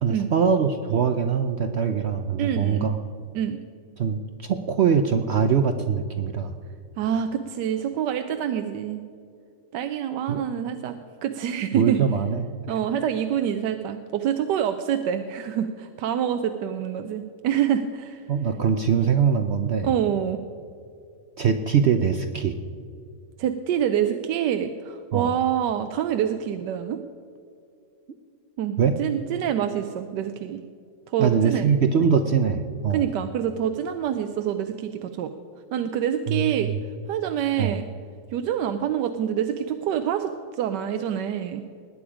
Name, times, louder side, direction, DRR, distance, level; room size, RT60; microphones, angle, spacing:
voice 1, 0.0-3.0 4.0-6.5 10.3-10.5 11.7-12.5 18.3-19.9 21.4-22.5 25.1-25.3 28.8-29.0 31.2-33.1 36.3-36.8 37.6-37.8, right 6 dB, 65° right, 7 dB, 0.6 m, -22 dB
voice 2, 2.4-2.9 3.3-3.6 7.0-9.0 9.7-11.0 11.2-12.0 12.7-18.2 19.8-20.4 23.4-27.0 28.6-30.6 31.1-31.7 32.9-35.3 35.7-36.7 37.1-37.9 38.3-41.6, right 9 dB, 80° right, 8 dB, 1.3 m, -26 dB
19.5 x 8.7 x 5.0 m, 2.3 s
omnidirectional pair, 1.8 m